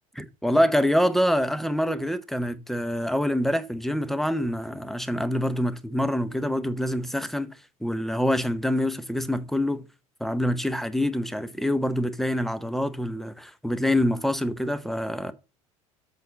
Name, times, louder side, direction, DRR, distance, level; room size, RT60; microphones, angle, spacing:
voice 1, 0.2-7.5 7.8-9.8 10.2-15.3, equal, ahead, 0.8 m, -26 dB
7.7 x 4.1 x 6.8 m
figure-of-eight pair, 70°, 18 cm